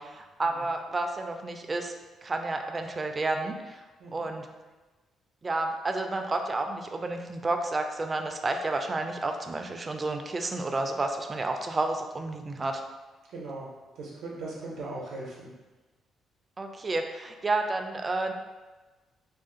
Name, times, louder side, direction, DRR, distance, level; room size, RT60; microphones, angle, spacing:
voice 1, 0.0-1.9 2.2-3.6 4.1-4.5 5.4-12.8 16.6-18.3, right 2 dB, 30° right, 5 dB, 0.3 m, -30 dB
voice 2, 13.3-13.7 14.0-15.5, right 2 dB, 85° right, -5 dB, 0.6 m, -38 dB
2.5 x 2.3 x 3.7 m, 1.2 s
cardioid pair, 90°, 0 cm